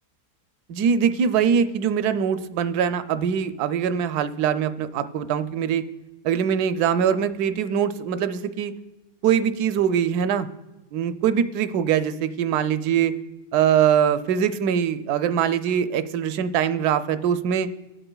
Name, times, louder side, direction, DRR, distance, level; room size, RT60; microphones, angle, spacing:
voice 1, 0.7-5.9 6.2-8.7 9.2-10.5 10.9-13.1 13.5-17.7, right 8 dB, 75° right, 11 dB, 1.1 m, -22 dB
19.5 x 7.8 x 2.3 m, 1.1 s
omnidirectional pair, 1.8 m